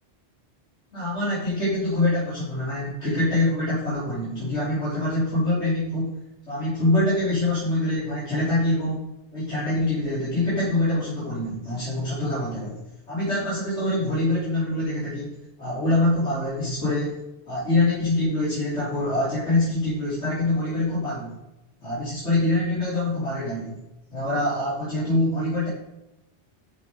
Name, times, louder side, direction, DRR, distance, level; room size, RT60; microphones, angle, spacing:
voice 1, 0.9-6.1 6.5-9.0 9.3-12.8 13.1-17.2 17.5-21.4 21.8-23.8 24.1-25.7, left 2 dB, 85° left, -12 dB, 3.9 m, -25 dB
11.5 x 4.7 x 5.3 m, 0.95 s
omnidirectional pair, 1.1 m